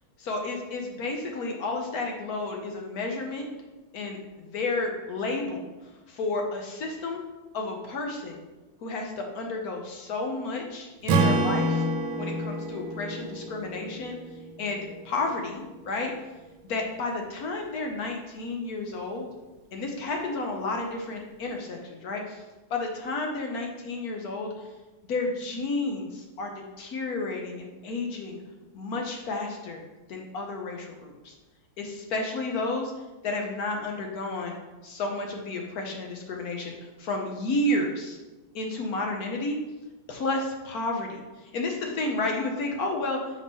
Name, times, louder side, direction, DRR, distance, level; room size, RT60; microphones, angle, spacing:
voice 1, 0.2-3.5 3.9-5.7 6.1-7.2 7.5-8.4 8.8-11.8 12.2-14.2 14.6-16.1 16.6-19.3 19.7-22.4 22.7-24.7 25.0-28.4 28.7-29.8 30.1-31.3 31.8-32.9 33.2-34.6 34.8-38.2 38.5-39.6 40.1-43.2, left 2 dB, 60° left, 2 dB, 1.1 m, -31 dB
Strum, 11.1-15.3, right 2 dB, 90° right, 1.4 m, -28 dB
5.5 x 5.1 x 3.6 m, 1.1 s
omnidirectional pair, 2.2 m